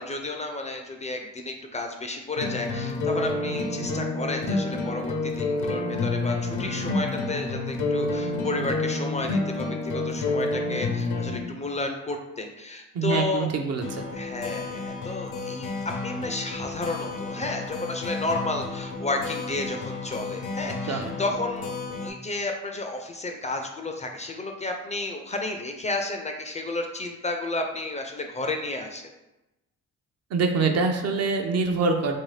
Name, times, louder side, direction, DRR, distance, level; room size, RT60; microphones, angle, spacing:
voice 1, 0.0-13.5 14.1-29.0, left 2 dB, 25° left, 3 dB, 0.4 m, -32 dB
sound 1, 2.4-11.4 13.8-22.1, left 3 dB, 80° left, 0.6 m, -30 dB
voice 2, 12.9-14.0 20.9-21.1 30.3-32.2, right 4 dB, 55° right, 4 dB, 0.6 m, -25 dB
3.1 x 2.7 x 3.2 m, 0.98 s
cardioid pair, 90°, 30 cm